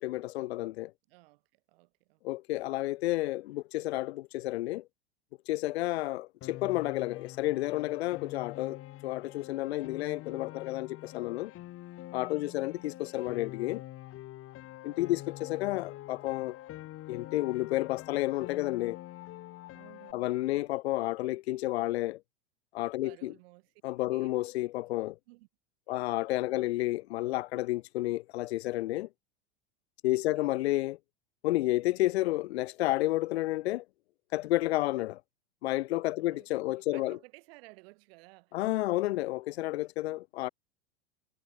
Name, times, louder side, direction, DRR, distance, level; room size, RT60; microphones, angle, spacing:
voice 1, 0.0-0.9 2.2-4.8 5.5-11.5 12.1-13.8 14.8-16.6 17.1-19.0 20.1-22.2 22.7-23.3 23.8-25.2 25.9-29.1 30.0-31.0 31.4-33.8 34.3-35.2 35.6-37.2 38.5-40.5, left 17 dB, 75° left, 0.6 m, -31 dB
voice 2, 1.1-2.2 12.4-12.9 14.8-15.3 19.7-20.4 23.0-23.7 24.1-24.3 25.3-25.5 25.9-26.7 30.1-30.6 36.2-38.6 39.0-39.1, right 24 dB, 65° right, 3.3 m, -57 dB
Piano, 6.4-20.1, left 15 dB, 45° left, 2.1 m, -46 dB
hypercardioid pair, 100°, 32 cm